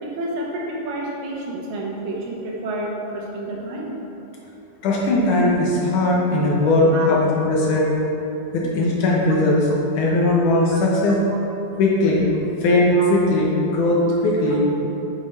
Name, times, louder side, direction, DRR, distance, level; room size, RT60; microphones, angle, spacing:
voice 1, 0.0-4.0 6.9-7.1 7.7-7.8 10.7-10.8 12.9-13.1, right 2 dB, 75° right, -2 dB, 2.6 m, -29 dB
voice 2, 4.8-7.9 8.5-9.7 10.0-11.2 11.8-12.3 12.6-14.7, left 2 dB, 70° left, -3 dB, 2.3 m, -19 dB
8.6 x 7.9 x 3.3 m, 3.0 s
omnidirectional pair, 4.2 m